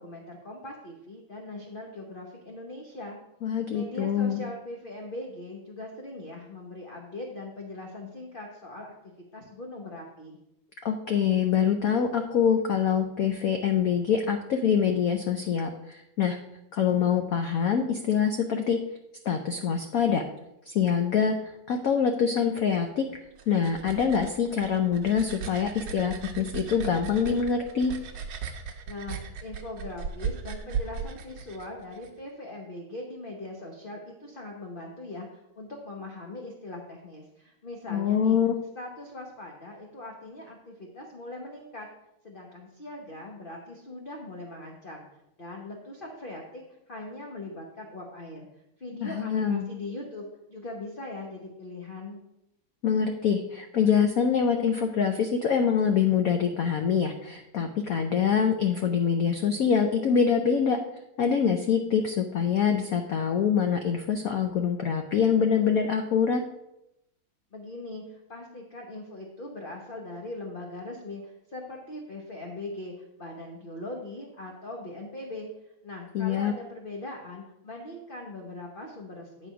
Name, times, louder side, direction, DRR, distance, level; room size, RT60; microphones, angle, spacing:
voice 1, 0.0-3.2 3.7-8.9 9.3-10.4 28.9-38.4 38.8-41.9 42.2-45.1 45.4-46.6 46.9-48.5 48.8-52.2 67.5-72.9 73.2-75.5 75.8-79.5, left 2 dB, 40° left, 0 dB, 0.7 m, -40 dB
voice 2, 3.4-4.4 10.8-16.4 16.7-18.8 19.3-20.2 20.7-21.3 21.7-23.0 23.5-27.9 37.9-38.6 49.0-49.7 52.8-60.8 61.2-66.4 76.1-76.5, left 7 dB, 85° left, 5 dB, 0.7 m, -25 dB
sound 1, 23.1-32.1, right 6 dB, 65° right, 1.4 m, -37 dB
9.0 x 4.2 x 6.2 m, 0.85 s
omnidirectional pair, 2.3 m